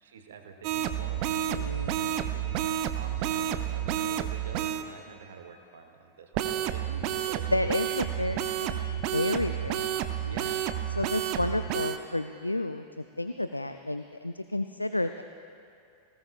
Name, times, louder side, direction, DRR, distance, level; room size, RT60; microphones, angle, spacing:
voice 1, 0.0-1.7 2.0-2.7 2.9-7.8 10.3-10.7, right 6 dB, 60° right, 5 dB, 1.0 m, -46 dB
sound 1, 0.6-4.8 6.3-12.0, right 11 dB, 45° right, 0.7 m, -30 dB
voice 2, 1.5-2.1 7.5-10.6 11.0-15.2, left 1 dB, 85° left, 9 dB, 0.3 m, -31 dB
19.5 x 18.5 x 2.4 m, 2.4 s
figure-of-eight pair, 90°, 0 cm